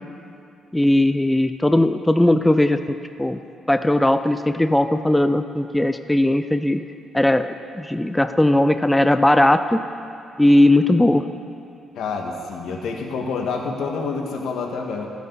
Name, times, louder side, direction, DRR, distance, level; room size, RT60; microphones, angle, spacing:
voice 1, 0.7-2.8 3.2-3.4 3.7-6.8 7.1-9.8 10.4-11.2, left 1 dB, 10° left, 9 dB, 0.5 m, -18 dB
voice 2, 12.0-15.1, left 4 dB, 75° left, 1 dB, 1.8 m, -27 dB
27.5 x 9.2 x 4.2 m, 2.6 s
cardioid pair, 90°, 0 cm